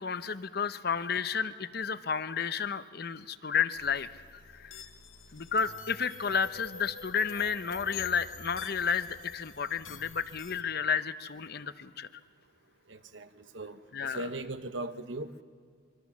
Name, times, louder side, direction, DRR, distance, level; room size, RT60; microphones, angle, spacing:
voice 1, 0.0-4.1 4.5-4.8 5.3-12.1 13.9-14.2, left 6 dB, 50° left, 13 dB, 0.7 m, -31 dB
sound 1, 3.7-10.6, left 7 dB, 90° left, 1.2 m, -47 dB
voice 2, 12.9-15.4, right 2 dB, 70° right, 10 dB, 1.0 m, -39 dB
25.0 x 23.0 x 7.2 m, 2.2 s
head